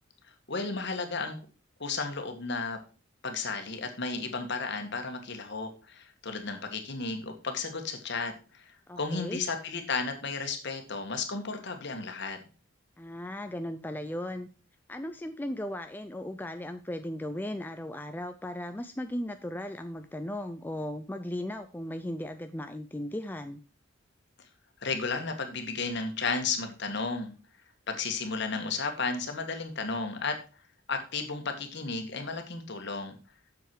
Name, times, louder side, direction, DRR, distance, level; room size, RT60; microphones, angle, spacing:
voice 1, 0.5-1.3 1.8-2.8 3.2-12.4 24.8-27.3 27.9-30.4 30.9-33.2, left 4 dB, 55° left, 5 dB, 1.6 m, -33 dB
voice 2, 8.9-9.4 13.0-14.5 14.9-23.6, left 1 dB, 10° left, 7 dB, 0.4 m, -36 dB
7.8 x 7.0 x 4.5 m, 0.35 s
head